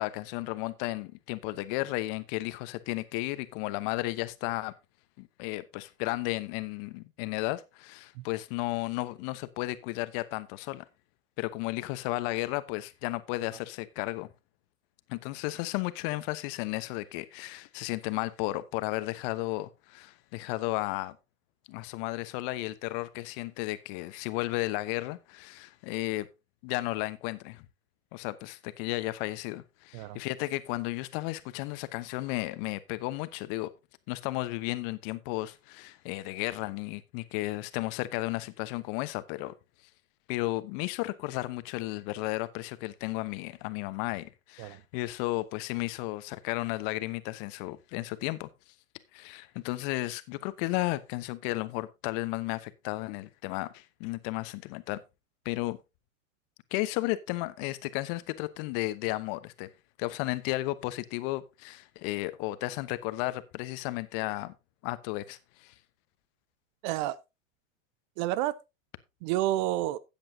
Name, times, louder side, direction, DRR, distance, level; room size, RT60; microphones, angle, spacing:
voice 1, 0.0-4.7 5.2-10.8 11.4-14.3 15.1-21.2 21.7-26.3 26.6-27.7 28.1-33.7 34.1-39.5 40.3-48.5 49.1-55.0 55.4-55.8 56.7-59.7 60.0-64.5 64.8-65.7, left 19 dB, 45° left, 1.0 m, -33 dB
voice 2, 66.8-67.2 68.2-68.6 69.2-70.0, right 14 dB, 35° right, 0.5 m, -29 dB
13.5 x 8.8 x 2.7 m
hypercardioid pair, 105°, 40 cm